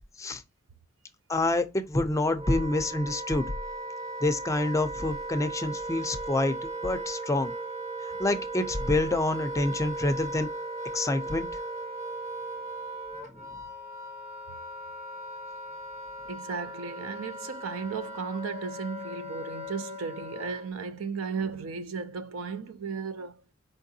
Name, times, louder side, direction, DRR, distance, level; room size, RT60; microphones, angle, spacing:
voice 1, 1.3-3.5 4.2-7.5 8.2-10.5 10.9-11.4, left 2 dB, 15° left, 0.4 m, -27 dB
Wind instrument woodwind instrument, 1.9-20.7, right 1 dB, 35° right, 1.1 m, -38 dB
voice 2, 16.2-23.4, right 5 dB, 80° right, 0.5 m, -35 dB
4.6 x 3.6 x 2.6 m
head